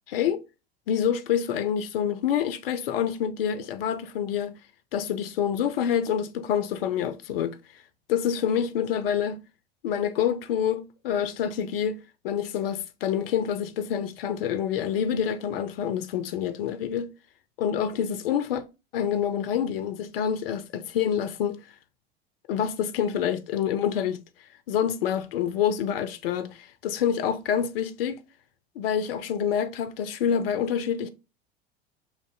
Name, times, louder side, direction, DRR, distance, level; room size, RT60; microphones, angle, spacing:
voice 1, 0.1-0.4 0.9-4.6 4.9-7.6 8.1-9.4 9.8-12.0 12.2-17.1 17.6-18.6 18.9-21.6 22.5-24.2 24.7-28.2 28.8-31.1, left 8 dB, 65° left, 0.5 m, -27 dB
6.2 x 2.5 x 2.4 m
figure-of-eight pair, 80°, 31 cm